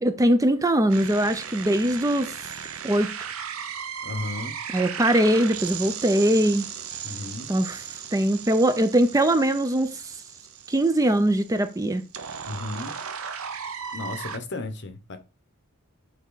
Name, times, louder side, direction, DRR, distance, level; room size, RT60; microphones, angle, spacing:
voice 1, 0.0-2.3 2.8-3.1 4.7-6.7 7.5-7.8 8.1-10.1 10.7-12.0, right 1 dB, 15° right, 0.5 m, -21 dB
sound 1, 0.9-14.4, right 7 dB, 75° right, 0.9 m, -36 dB
voice 2, 4.0-4.5 7.0-7.5 12.5-13.0 13.9-15.2, left 2 dB, 55° left, 1.1 m, -34 dB
9.1 x 3.5 x 4.0 m
head